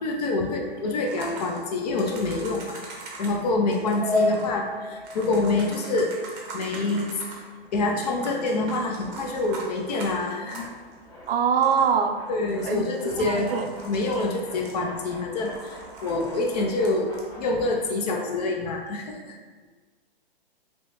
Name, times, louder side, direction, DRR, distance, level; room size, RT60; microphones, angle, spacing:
voice 1, 0.0-2.8 3.2-6.1 6.5-7.1 7.7-10.7 12.3-13.5 13.8-19.4, left 2 dB, 40° left, 1 dB, 0.5 m, -26 dB
sound 1, 0.6-17.8, left 2 dB, 10° left, 0.8 m, -37 dB
sound 2, 1.1-3.3 3.7-4.5 5.0-7.5 8.0-10.9 11.3-11.4 11.6-11.9 12.5-15.1 15.4-17.2 18.4-18.5, right 3 dB, 30° right, 0.7 m, -42 dB
voice 2, 11.3-12.2 12.6-12.8 13.2-13.7, right 7 dB, 70° right, 5 dB, 0.5 m, -23 dB
3.0 x 2.9 x 3.1 m, 1.4 s
hypercardioid pair, 140°, 30 cm